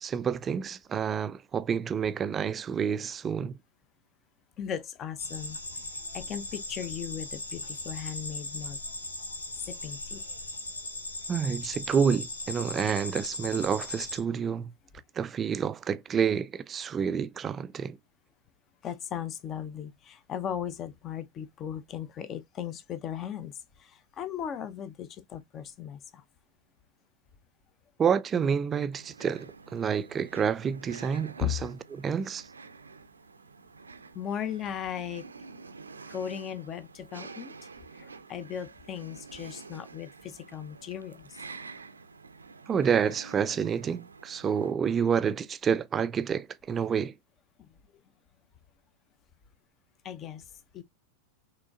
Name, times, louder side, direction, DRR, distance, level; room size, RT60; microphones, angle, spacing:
voice 1, 0.0-3.6 11.3-14.7 15.2-18.0 28.0-31.7 32.0-32.5 42.7-47.1, right 7 dB, 20° right, 0.3 m, -28 dB
voice 2, 4.6-5.6 6.1-8.8 9.7-10.2 18.8-26.2 31.4-31.5 34.1-35.3 36.1-37.5 38.0-41.4 47.6-47.7 50.0-50.5 50.7-50.8, left 9 dB, 30° left, 0.7 m, -37 dB
sound 1, 5.2-14.2, left 2 dB, 80° left, 1.1 m, -38 dB
sound 2, 28.9-44.7, right 4 dB, 75° right, 0.5 m, -48 dB
5.9 x 3.2 x 2.4 m
figure-of-eight pair, 90°, 0 cm